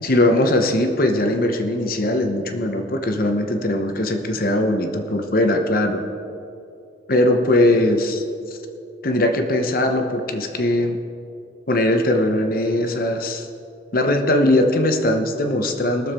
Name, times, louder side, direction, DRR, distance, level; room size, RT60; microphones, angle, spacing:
voice 1, 0.0-6.0 7.1-8.6 9.0-11.0 11.7-13.5 13.9-16.1, left 1 dB, 50° left, 5 dB, 0.9 m, -20 dB
20.0 x 7.0 x 4.3 m, 2.6 s
head